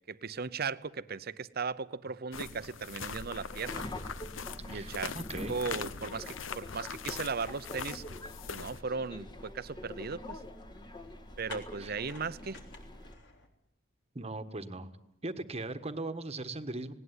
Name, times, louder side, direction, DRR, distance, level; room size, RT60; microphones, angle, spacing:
voice 1, 0.1-3.8 4.7-5.1 5.5-8.0 8.5-10.4 11.4-12.6, right 5 dB, 50° right, 15 dB, 0.8 m, -37 dB
sound 1, 2.3-8.8, left 6 dB, 80° left, 0.9 m, -42 dB
Subway metro underground, 3.1-13.1, left 1 dB, 25° left, 1.6 m, -45 dB
voice 2, 4.7-5.5 11.8-11.9 14.1-14.9 15.2-16.9, right 2 dB, 35° right, 9 dB, 1.4 m, -39 dB
sound 2, 8.4-13.5, left 3 dB, 65° left, 3.5 m, -53 dB
19.5 x 18.5 x 9.8 m, 0.79 s
head